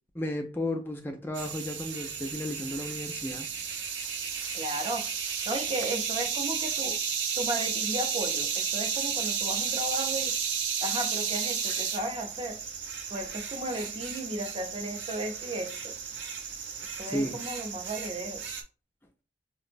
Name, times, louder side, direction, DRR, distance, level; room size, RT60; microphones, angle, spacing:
voice 1, 0.1-3.5 17.1-17.4, left 1 dB, 10° left, 0.3 m, -33 dB
sound 1, 1.3-18.6, right 7 dB, 90° right, 0.6 m, -33 dB
voice 2, 4.5-5.1 5.5-7.0 7.4-10.4 10.8-12.6 13.1-16.0 17.0-18.4, right 1 dB, 30° right, 0.6 m, -35 dB
5.2 x 2.0 x 2.5 m
head